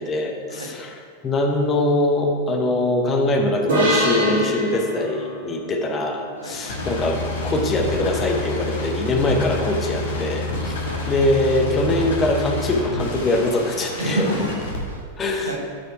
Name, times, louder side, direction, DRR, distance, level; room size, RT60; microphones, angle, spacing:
voice 1, 0.0-7.2 7.4-14.3 15.2-15.6, left 2 dB, 25° left, 2 dB, 1.0 m, -22 dB
sound 1, 3.7-7.2, right 1 dB, 60° right, 1.9 m, -25 dB
voice 2, 6.4-6.7 10.8-11.0 14.0-15.0 15.5-15.6, right 1 dB, 80° right, 1 dB, 1.0 m, -28 dB
sound 2, 6.5-14.8, left 2 dB, 60° left, 1.5 m, -28 dB
8.8 x 4.9 x 4.7 m, 2.1 s
figure-of-eight pair, 90°, 0 cm